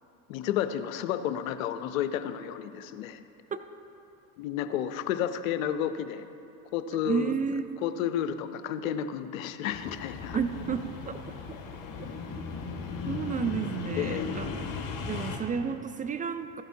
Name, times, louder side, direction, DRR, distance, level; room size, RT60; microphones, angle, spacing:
voice 1, 0.3-3.2 4.4-6.2 6.7-7.3 7.8-10.4 14.0-14.3, left 10 dB, 85° left, 11 dB, 0.6 m, -31 dB
voice 2, 7.1-7.7 10.3-11.2 11.5-11.6 13.1-14.6 15.1-16.6, right 6 dB, 20° right, 9 dB, 0.3 m, -31 dB
sound 1, 9.7-15.4, left 5 dB, 50° left, 1.6 m, -36 dB
14.0 x 10.5 x 2.8 m, 2.7 s
hypercardioid pair, 85°, 40 cm